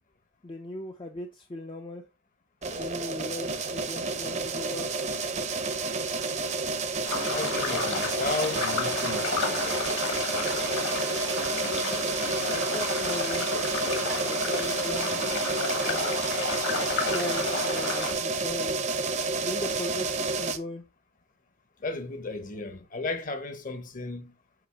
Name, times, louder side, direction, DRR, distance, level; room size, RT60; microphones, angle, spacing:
voice 1, 0.4-2.0 2.8-5.0 12.5-13.7 14.2-15.2 15.8-18.8 19.4-20.8, left 2 dB, 25° left, 0.5 m, -38 dB
sound 1, 2.6-20.6, right 3 dB, 35° right, 0.7 m, -30 dB
sound 2, 7.1-18.1, left 4 dB, 60° left, 1.7 m, -32 dB
voice 2, 7.3-9.8 21.8-24.3, left 3 dB, 40° left, 1.0 m, -34 dB
7.9 x 3.0 x 4.5 m
head